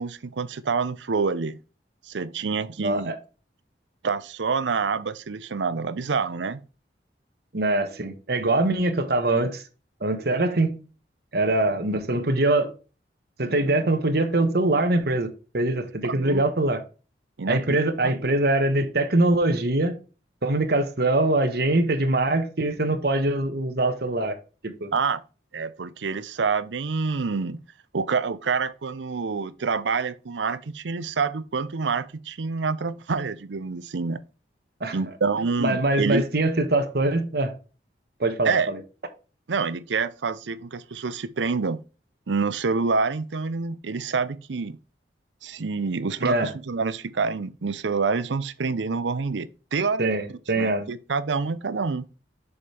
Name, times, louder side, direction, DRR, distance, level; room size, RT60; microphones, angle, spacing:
voice 1, 0.0-1.6 2.1-3.1 4.0-6.6 16.0-16.4 17.4-17.8 18.0-18.2 24.9-25.2 25.5-27.6 27.9-34.2 34.9-36.2 38.4-38.7 39.5-41.8 42.3-44.8 45.4-50.1 50.5-52.1, right 4 dB, 90° right, 0.6 m, -27 dB
voice 2, 2.8-3.2 7.5-9.6 10.0-10.8 11.3-12.7 13.4-15.3 15.5-16.8 17.5-20.0 20.4-24.3 24.6-24.9 34.8-35.0 35.6-37.5 38.2-38.8 46.2-46.5 50.0-50.9, right 2 dB, 60° right, 1.3 m, -23 dB
7.0 x 5.2 x 3.3 m
head